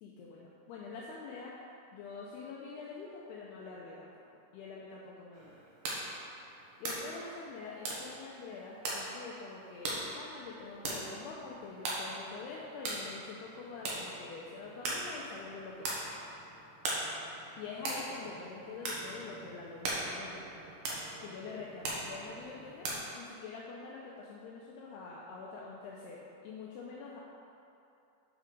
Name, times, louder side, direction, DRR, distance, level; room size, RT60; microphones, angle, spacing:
voice 1, 0.0-1.5 1.9-4.2 4.5-5.6 6.8-16.0 17.6-20.5 21.2-27.2, left 4 dB, 80° left, -4 dB, 2.3 m, -45 dB
sound 1, 5.3-22.9, right 2 dB, 70° right, 2.1 m, -41 dB
9.0 x 4.7 x 5.1 m, 2.8 s
omnidirectional pair, 5.4 m